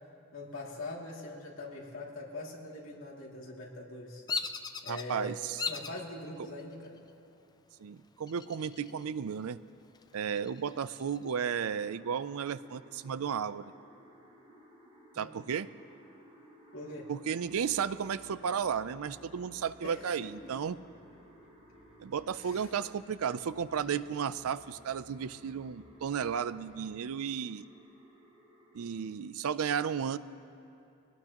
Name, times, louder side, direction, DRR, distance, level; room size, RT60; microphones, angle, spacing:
voice 1, 0.3-4.2 4.8-5.3 5.7-7.0 15.1-15.3 16.7-17.1 19.8-20.3 22.4-22.7, left 2 dB, 65° left, -3 dB, 2.6 m, -43 dB
Bird vocalization bird call bird song, 4.3-5.0 5.6-6.0 6.6-7.1 8.3-9.0 9.4-9.5 9.9-11.4, left 5 dB, 20° left, 0.4 m, -37 dB
voice 2, 4.9-5.6 6.4-6.5 7.8-9.6 10.1-13.7 15.2-15.7 17.1-20.8 22.0-27.7 28.7-30.2, right 7 dB, 75° right, 15 dB, 0.4 m, -34 dB
sound 1, 11.4-29.1, equal, 25° right, 3.6 m, -58 dB
Bass guitar, 17.4-27.0, equal, 5° right, 2.6 m, -60 dB
23.0 x 17.5 x 3.0 m, 2.7 s
head